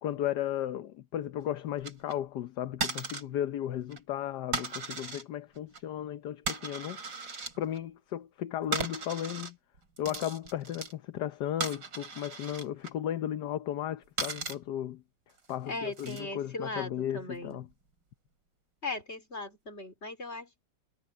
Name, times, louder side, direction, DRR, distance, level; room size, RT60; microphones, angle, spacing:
voice 1, 0.0-7.0 7.6-9.6 10.0-15.0 15.5-17.7, left 11 dB, 65° left, 1.4 m, -35 dB
sound 1, 1.8-2.1 2.8-3.2 3.7-4.0 4.5-5.2 5.6-5.8 6.5-7.8 8.7-9.5 9.8-10.9 11.6-12.9 14.2-14.6 15.4-16.2 17.4-17.7, right 4 dB, 70° right, 3.8 m, -36 dB
voice 2, 15.6-17.6 18.8-20.7, left 2 dB, 35° left, 4.4 m, -38 dB
omnidirectional pair, 2.0 m